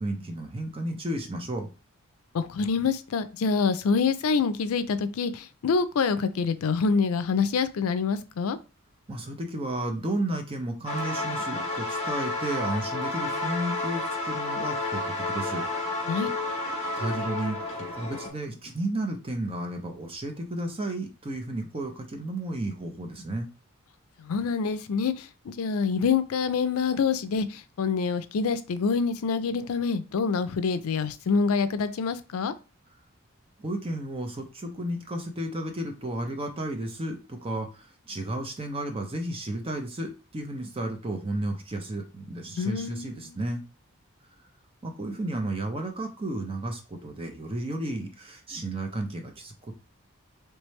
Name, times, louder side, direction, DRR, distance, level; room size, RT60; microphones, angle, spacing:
voice 1, 0.0-1.7 9.1-15.7 17.0-23.5 33.6-43.6 44.8-49.7, right 1 dB, 25° right, 0.6 m, -33 dB
voice 2, 2.3-8.6 16.1-16.3 24.2-32.5 42.6-43.4, left 5 dB, 80° left, 0.4 m, -26 dB
sound 1, 10.9-18.3, left 2 dB, 30° left, 1.1 m, -31 dB
3.3 x 3.2 x 3.1 m
head